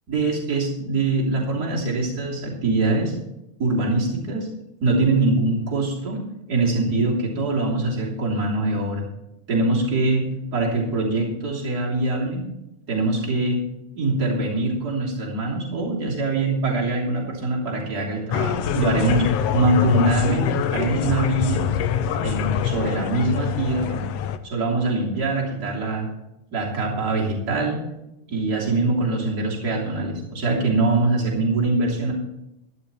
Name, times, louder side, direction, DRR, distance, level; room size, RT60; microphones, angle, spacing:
voice 1, 0.1-3.1 3.6-4.5 4.8-6.2 6.5-9.0 9.5-12.5 12.9-13.6 13.9-21.7 22.2-24.0 24.4-26.1 26.5-27.8 28.3-32.1, right 2 dB, 30° right, -4 dB, 3.5 m, -23 dB
sound 1, 18.3-24.4, left 9 dB, 70° left, 1.7 m, -25 dB
13.0 x 11.5 x 4.3 m, 0.89 s
omnidirectional pair, 3.3 m